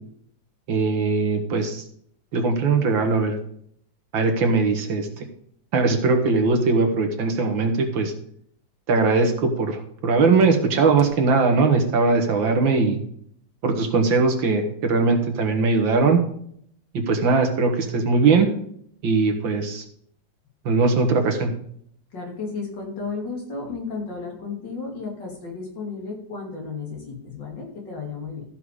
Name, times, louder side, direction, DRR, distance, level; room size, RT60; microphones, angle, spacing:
voice 1, 0.7-1.8 2.3-3.4 4.1-5.1 5.7-8.1 8.9-13.0 13.6-16.2 16.9-18.5 19.0-19.8 20.7-21.5, right 4 dB, 90° right, 5 dB, 2.3 m, -20 dB
voice 2, 22.1-28.4, left 4 dB, 65° left, 0 dB, 3.4 m, -33 dB
14.0 x 5.9 x 4.8 m, 0.66 s
omnidirectional pair, 2.0 m